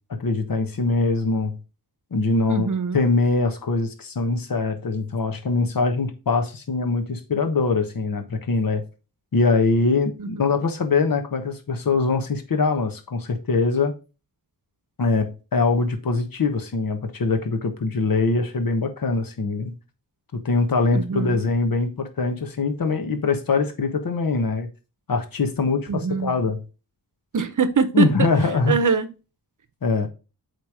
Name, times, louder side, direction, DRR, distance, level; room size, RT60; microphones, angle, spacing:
voice 1, 0.1-1.6 2.1-2.7 2.9-8.8 9.3-13.9 15.0-19.7 20.3-24.7 25.1-26.6 27.9-28.8 29.8-30.1, left 3 dB, 60° left, 1.3 m, -23 dB
voice 2, 2.5-3.0 10.2-10.3 20.9-21.5 25.9-26.3 27.3-28.1 28.7-29.1, right 5 dB, 50° right, 0.9 m, -23 dB
8.1 x 3.4 x 4.8 m
wide cardioid pair, 100°, 38 cm